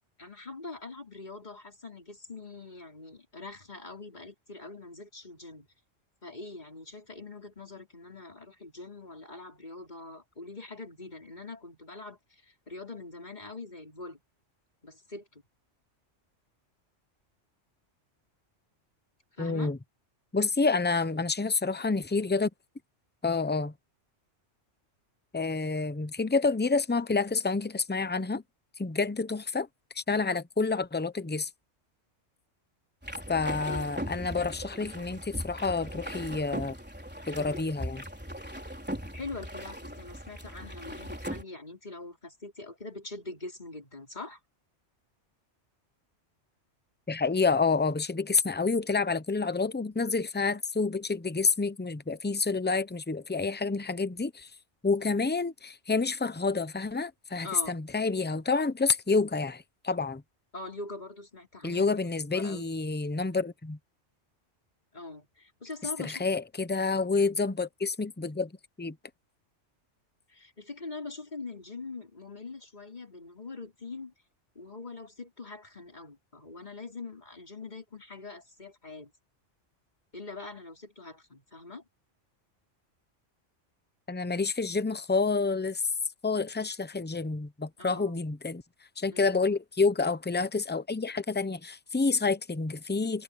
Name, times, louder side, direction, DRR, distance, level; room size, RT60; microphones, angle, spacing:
voice 1, 0.2-5.7 6.2-14.2 14.8-15.4 19.3-19.7 33.7-34.0 38.7-38.8 39.1-44.4 57.4-57.8 60.5-62.0 62.3-62.7 64.9-66.2 70.3-74.1 74.5-79.1 80.1-81.8 87.8-88.2 89.1-89.4, left 3 dB, 35° left, 4.5 m, -43 dB
voice 2, 19.4-19.8 20.3-22.5 23.2-23.7 25.3-28.4 28.8-29.7 29.9-31.5 33.3-36.7 37.3-38.0 47.1-54.5 54.8-60.2 61.6-63.8 66.0-68.5 68.8-68.9 84.1-85.8 86.2-88.6 89.0-93.2, left 4 dB, 10° left, 0.6 m, -28 dB
sound 1, 33.0-41.4, equal, 10° right, 4.1 m, -39 dB
omnidirectional pair, 1.2 m